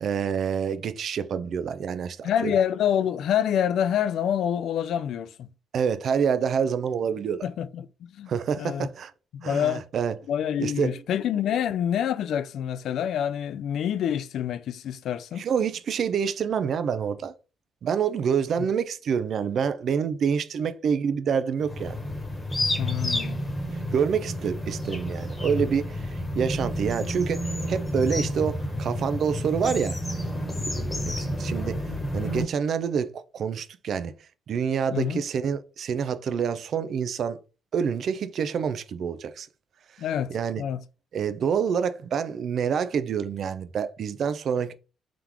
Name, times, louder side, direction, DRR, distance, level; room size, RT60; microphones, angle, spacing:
voice 1, 0.0-2.5 5.7-7.4 8.3-9.1 9.4-10.1 10.6-10.9 15.4-17.3 17.8-22.0 23.9-30.2 30.6-31.8 32.1-34.1 34.5-37.4 37.7-39.5 40.3-40.6 41.1-44.7, right 7 dB, 60° right, 0.5 m, -27 dB
voice 2, 2.2-5.5 7.4-8.9 9.3-9.9 10.3-15.5 18.6-18.7 22.8-23.4 34.9-35.2 40.0-40.8, left 9 dB, 75° left, 0.3 m, -27 dB
sound 1, 21.6-32.4, left 1 dB, 25° left, 1.2 m, -30 dB
3.7 x 3.0 x 3.6 m
cardioid pair, 90°, 0 cm